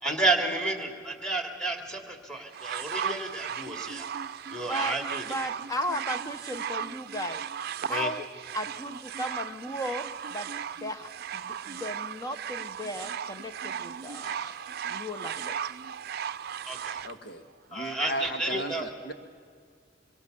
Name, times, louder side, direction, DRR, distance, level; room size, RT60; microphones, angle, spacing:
voice 1, 0.0-4.1 4.5-5.2 7.9-8.1 14.2-14.5 16.6-17.0 17.7-18.9, right 2 dB, 5° left, 4 dB, 2.8 m, -31 dB
sound 1, 2.5-17.1 18.0-18.1, right 8 dB, 55° right, 0.5 m, -36 dB
voice 2, 5.3-7.4 7.9-8.3 8.5-10.5 10.8-14.6 14.9-15.6, left 1 dB, 20° left, 7 dB, 0.9 m, -35 dB
voice 3, 17.0-17.4 17.7-19.1, right 1 dB, 60° left, 7 dB, 1.9 m, -35 dB
25.5 x 23.5 x 6.9 m, 2.1 s
head